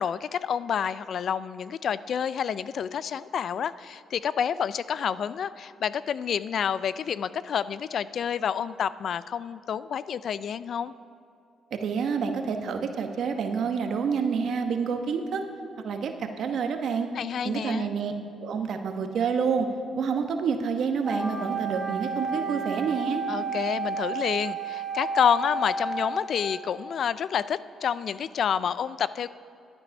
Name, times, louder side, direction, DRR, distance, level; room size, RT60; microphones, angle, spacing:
voice 1, 0.0-10.9 17.1-17.9 23.3-29.3, left 8 dB, 60° left, 16 dB, 0.3 m, -29 dB
voice 2, 11.7-15.4 15.8-17.1 17.4-18.1 18.4-19.7 20.0-23.2, right 6 dB, 65° right, 6 dB, 1.0 m, -28 dB
Wind instrument woodwind instrument, 21.0-26.9, right 4 dB, ahead, 1.3 m, -32 dB
12.0 x 9.0 x 5.3 m, 2.5 s
cardioid pair, 90°, 0 cm